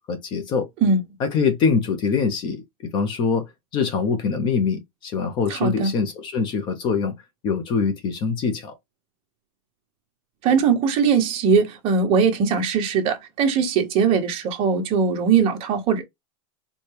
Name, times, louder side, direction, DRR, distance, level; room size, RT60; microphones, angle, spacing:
voice 1, 0.1-0.7 1.2-2.6 2.9-3.4 3.7-7.2 7.4-8.7, left 5 dB, 25° left, 0.6 m, -23 dB
voice 2, 5.5-5.9 10.4-16.0, right 6 dB, 35° right, 1.1 m, -20 dB
4.3 x 2.2 x 3.2 m
supercardioid pair, 165°, 18 cm